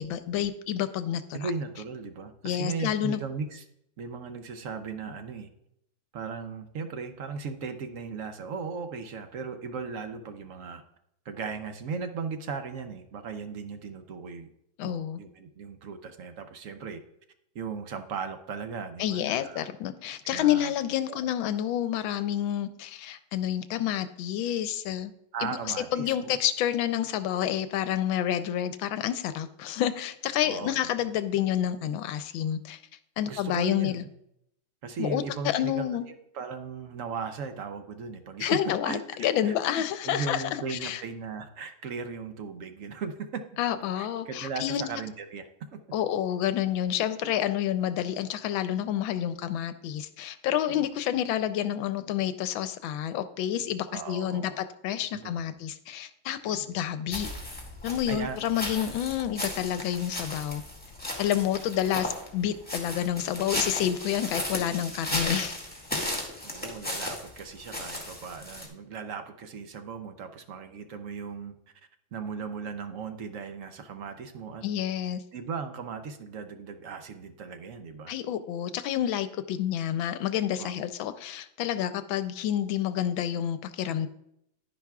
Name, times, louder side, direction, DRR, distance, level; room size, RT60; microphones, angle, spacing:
voice 1, 0.0-1.4 2.4-3.2 14.8-15.2 19.0-25.1 25.4-25.6 25.9-32.8 33.2-34.0 35.0-36.0 38.4-41.0 43.6-44.9 45.9-57.3 57.8-60.6 61.2-65.5 74.6-75.2 78.1-84.1, left 11 dB, 80° left, 12 dB, 1.3 m, -29 dB
voice 2, 1.3-3.6 4.0-5.5 6.1-10.8 11.2-14.5 14.8-17.0 17.5-19.7 20.2-20.7 21.1-21.2 25.3-26.4 30.4-30.8 33.3-34.1 34.8-36.0 36.3-38.6 38.8-43.4 43.9-45.8 50.7-50.8 53.9-54.6 55.1-55.6 56.5-56.7 58.1-58.4 58.8-58.9 61.8-61.9 66.4-71.5 72.1-74.6 75.3-78.1 80.6-80.7, right 5 dB, 70° right, 8 dB, 0.7 m, -37 dB
sound 1, 57.1-68.7, left 1 dB, 5° left, 1.7 m, -35 dB
11.5 x 10.0 x 2.4 m, 0.77 s
omnidirectional pair, 2.2 m